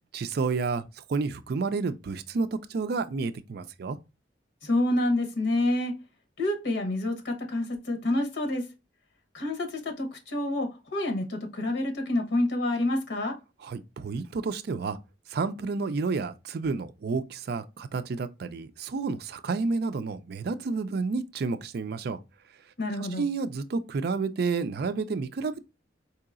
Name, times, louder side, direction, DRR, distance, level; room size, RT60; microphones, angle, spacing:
voice 1, 0.1-4.0 13.6-15.0 15.3-22.2 23.0-25.6, right 4 dB, 60° right, 0.4 m, -30 dB
voice 2, 4.6-5.9 6.4-8.7 9.3-13.4 22.8-23.3, left 1 dB, 90° left, 1.0 m, -28 dB
4.6 x 2.8 x 2.4 m
head